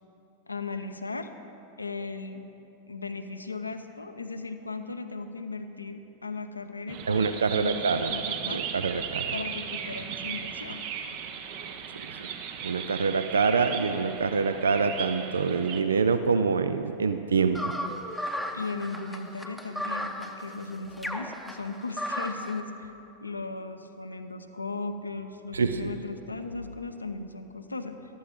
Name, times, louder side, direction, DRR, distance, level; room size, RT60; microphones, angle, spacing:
voice 1, 0.5-1.3 1.8-2.5 2.9-7.3 7.5-8.6 9.3-10.8 18.5-22.9 23.2-28.2, left 3 dB, 80° left, 7 dB, 0.6 m, -37 dB
sound 1, 6.9-15.8, right 8 dB, 45° right, 0.8 m, -36 dB
voice 2, 7.1-8.1 8.5-9.3 12.0-12.1 12.6-17.7 25.5-25.9, right 5 dB, 70° right, 10 dB, 0.4 m, -26 dB
sound 2, 17.5-22.6, left 1 dB, ahead, 0.8 m, -35 dB
14.0 x 12.0 x 3.6 m, 3.0 s
figure-of-eight pair, 90°, 0 cm